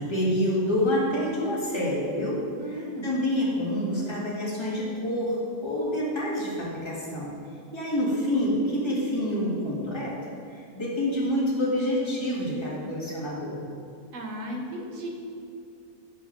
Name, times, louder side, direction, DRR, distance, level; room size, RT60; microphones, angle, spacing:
voice 1, 0.0-2.4 2.7-7.3 7.7-10.2 10.5-13.6, equal, 20° left, -6 dB, 2.0 m, -27 dB
voice 2, 2.6-3.1 14.1-15.1, equal, 65° right, 0 dB, 1.7 m, -35 dB
8.3 x 6.7 x 5.9 m, 2.4 s
omnidirectional pair, 1.4 m